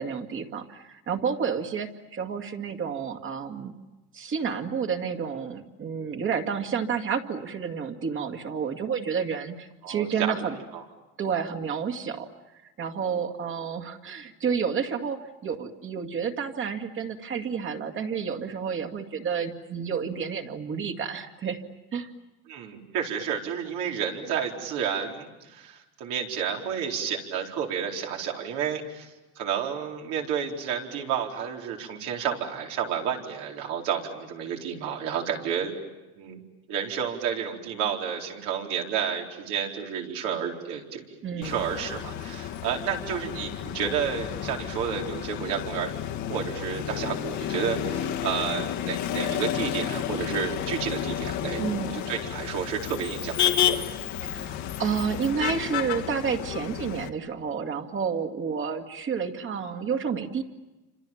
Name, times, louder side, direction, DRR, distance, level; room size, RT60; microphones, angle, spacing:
voice 1, 0.0-3.7 4.1-10.6 11.2-12.3 12.8-21.6 21.9-22.1 41.2-41.6 51.6-51.9 54.2-60.4, right 6 dB, 45° right, 5 dB, 2.3 m, -30 dB
voice 2, 9.8-10.4 10.7-10.8 22.5-35.8 36.2-36.4 36.7-41.0 41.4-45.9 46.3-51.7 51.9-53.9, right 8 dB, 85° right, 1 dB, 4.4 m, -31 dB
Motor vehicle (road), 41.4-57.1, left 11 dB, 75° left, 1.6 m, -31 dB
29.5 x 26.5 x 7.3 m, 1.1 s
cardioid pair, 125°, 29 cm